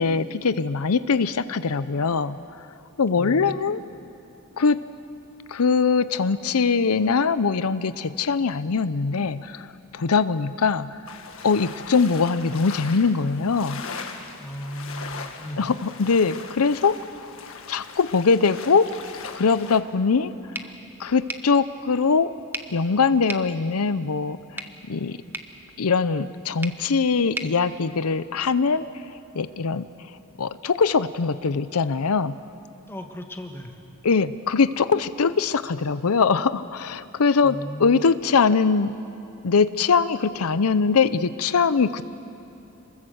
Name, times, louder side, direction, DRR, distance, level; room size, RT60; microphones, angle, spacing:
voice 1, 0.0-2.7 3.0-3.8 4.6-4.8 5.5-11.0 11.4-13.8 15.6-17.0 17.7-18.9 19.3-20.3 21.0-22.3 22.7-25.2 25.8-29.0 29.3-29.9 30.4-32.4 34.0-39.0 39.4-42.0, left 5 dB, 85° left, 14 dB, 0.6 m, -22 dB
voice 2, 3.2-3.6 14.4-15.8 32.9-33.8 37.4-38.0, equal, 10° left, 4 dB, 1.5 m, -36 dB
sound 1, 11.1-19.8, left 5 dB, 65° left, 1.7 m, -39 dB
sound 2, 20.5-28.6, right 2 dB, 10° right, 0.9 m, -40 dB
27.5 x 20.5 x 8.0 m, 2.7 s
head